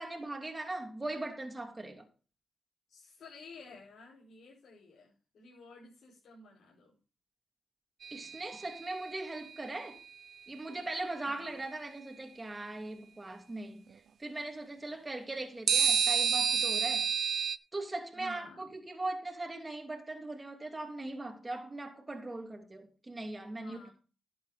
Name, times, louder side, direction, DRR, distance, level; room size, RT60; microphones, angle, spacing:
voice 1, 0.0-2.1 8.1-10.0 10.5-13.8 14.2-17.1 17.7-23.9, right 2 dB, 25° right, 2.8 m, -40 dB
voice 2, 2.9-6.9 11.2-11.6 18.1-18.7 23.5-23.9, left 2 dB, 70° left, 5.0 m, -53 dB
sound 1, 8.0-9.3 15.7-17.6, right 7 dB, 70° right, 0.5 m, -29 dB
11.5 x 9.1 x 4.1 m
supercardioid pair, 50°, 0 cm